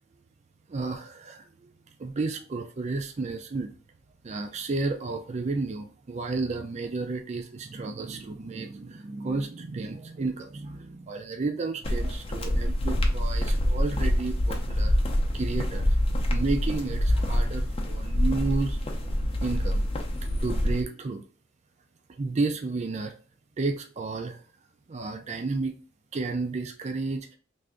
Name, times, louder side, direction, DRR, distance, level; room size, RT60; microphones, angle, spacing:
voice 1, 0.7-1.7 2.0-3.7 4.2-15.0 15.3-16.0 16.3-18.8 19.4-19.9 20.4-21.2 22.1-23.1 23.6-24.4 24.9-25.7 26.1-27.4, right 3 dB, 35° right, 5 dB, 0.4 m, -32 dB
sound 1, 11.8-20.8, equal, 30° left, 0.6 m, -26 dB
3.3 x 2.6 x 3.7 m, 0.38 s
head